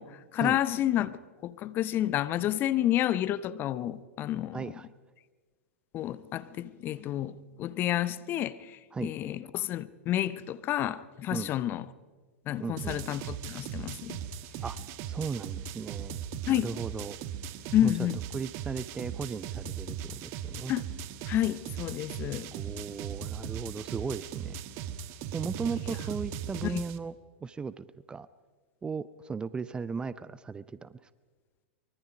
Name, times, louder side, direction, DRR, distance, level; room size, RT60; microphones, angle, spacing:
voice 1, 0.0-4.7 5.9-11.8 12.5-14.2 16.5-16.7 17.7-18.2 20.7-20.9 21.2-22.5 26.6-26.8, left 12 dB, 30° left, 0.9 m, -30 dB
voice 2, 4.5-4.9 8.9-9.1 11.3-11.5 12.6-13.0 14.6-14.8 15.0-16.2 16.5-17.2 17.8-18.1 18.3-20.7 22.5-24.6 25.3-27.1 27.4-28.3 28.8-31.1, right 5 dB, 15° right, 0.6 m, -36 dB
sound 1, 12.8-27.0, right 8 dB, 40° right, 1.3 m, -38 dB
24.0 x 23.5 x 5.3 m
figure-of-eight pair, 95°, 7 cm